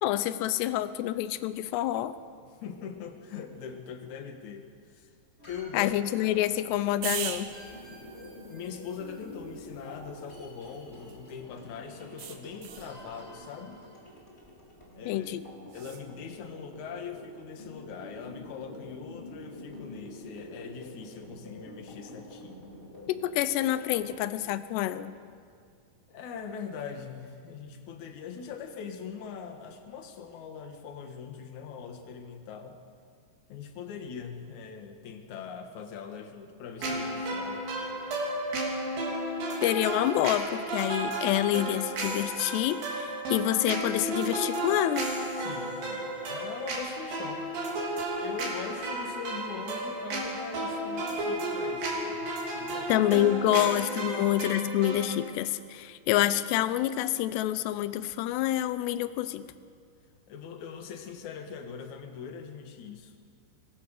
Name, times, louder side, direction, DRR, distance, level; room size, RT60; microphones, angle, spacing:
voice 1, 0.0-2.1 5.7-7.5 15.1-15.4 23.1-25.1 39.6-45.1 52.9-59.5, left 13 dB, 80° left, 13 dB, 2.8 m, -27 dB
voice 2, 2.5-5.1 5.5-5.9 8.5-13.8 14.9-15.3 15.7-22.6 26.1-32.8 33.5-37.7 45.4-47.5 48.2-52.9 54.1-54.4 60.3-63.2, left 6 dB, 55° left, 5 dB, 2.4 m, -42 dB
sound 1, 5.4-24.2, left 1 dB, 15° left, 3.8 m, -47 dB
sound 2, 7.0-11.4 12.2-13.0 15.7-16.1, right 9 dB, 80° right, 3.5 m, -41 dB
sound 3, 36.8-55.2, right 1 dB, 55° right, 4.9 m, -33 dB
24.0 x 19.5 x 6.6 m, 2.2 s
omnidirectional pair, 5.1 m